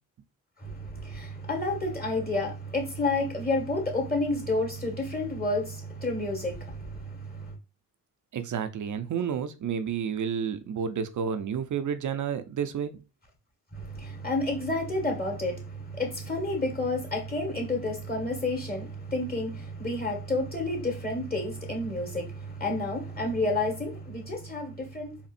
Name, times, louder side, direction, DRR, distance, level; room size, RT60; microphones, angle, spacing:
voice 1, 0.6-7.5 13.7-25.2, left 2 dB, 25° left, 1.7 m, -30 dB
voice 2, 8.3-13.0, right 7 dB, 55° right, 0.6 m, -30 dB
4.2 x 2.6 x 2.5 m
supercardioid pair, 55°, 37 cm